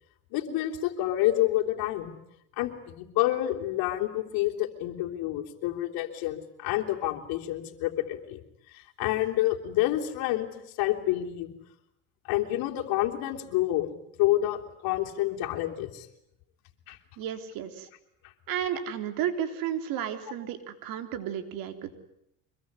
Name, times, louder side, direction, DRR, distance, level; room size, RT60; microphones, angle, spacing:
voice 1, 0.3-2.1 2.6-8.4 8.7-11.5 12.3-13.9 14.2-16.1 16.9-17.0 18.5-18.6, left 14 dB, 70° left, 3 dB, 3.4 m, -28 dB
voice 2, 17.2-17.9 18.5-21.9, right 9 dB, 65° right, 9 dB, 3.5 m, -33 dB
25.0 x 22.5 x 9.6 m, 0.76 s
cardioid pair, 120°, 37 cm